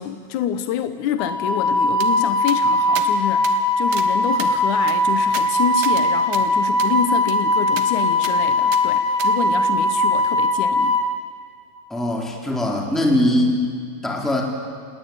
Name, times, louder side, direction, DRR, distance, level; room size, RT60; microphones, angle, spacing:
voice 1, 0.0-11.0, left 9 dB, 75° left, 9 dB, 1.8 m, -27 dB
Wind instrument woodwind instrument, 1.2-11.1, left 1 dB, 50° left, 3.8 m, -20 dB
sound 1, 2.0-2.1 2.5-2.6 3.0-3.1 3.4-3.6 3.9-4.1 4.4-6.1 6.3-6.4 6.8-6.9 7.3-7.4 7.8-7.9 8.2-8.4 8.7-8.8 9.2-9.3, right 9 dB, 80° right, 3.3 m, -34 dB
voice 2, 11.9-13.6 14.0-14.4, left 1 dB, ahead, -1 dB, 3.2 m, -21 dB
29.0 x 18.5 x 9.5 m, 2.1 s
omnidirectional pair, 4.7 m